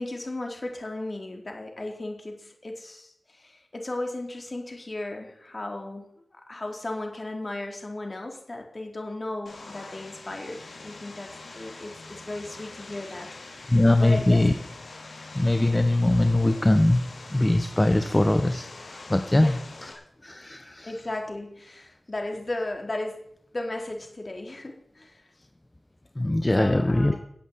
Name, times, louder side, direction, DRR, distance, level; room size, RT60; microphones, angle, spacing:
voice 1, 0.0-14.5 19.4-19.6 20.8-23.3 23.5-25.2 26.6-27.2, left 2 dB, 40° left, 2 dB, 4.2 m, -35 dB
Vehicle, 9.5-19.9, left 3 dB, 75° left, 5.1 m, -44 dB
voice 2, 13.7-14.5 15.3-17.0 17.3-19.9 20.2-20.9 26.2-27.2, left 1 dB, 20° left, 8 dB, 1.2 m, -22 dB
14.0 x 8.3 x 9.7 m, 0.71 s
cardioid pair, 50°, 0 cm